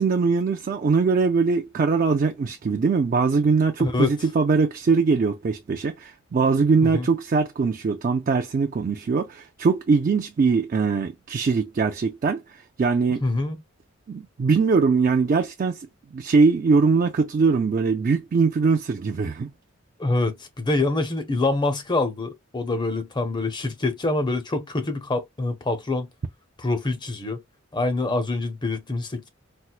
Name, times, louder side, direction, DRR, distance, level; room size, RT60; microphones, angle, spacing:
voice 1, 0.0-13.2 14.1-15.9 16.1-19.5, right 4 dB, 40° right, 0.3 m, -22 dB
voice 2, 3.8-4.1 6.8-7.1 13.2-13.6 20.0-26.1 26.6-27.4 27.7-29.3, left 2 dB, 20° left, 0.6 m, -25 dB
4.3 x 2.0 x 2.3 m
head